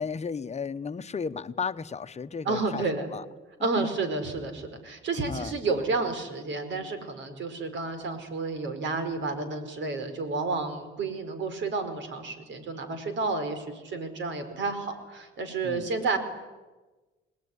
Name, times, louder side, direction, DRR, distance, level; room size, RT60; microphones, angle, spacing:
voice 1, 0.0-3.2 3.6-3.9 5.3-5.5 15.6-15.9, left 5 dB, 35° left, 12 dB, 1.1 m, -34 dB
voice 2, 2.4-3.1 3.6-16.2, right 3 dB, 70° right, 9 dB, 4.9 m, -31 dB
26.0 x 20.0 x 9.8 m, 1.2 s
cardioid pair, 90°, 20 cm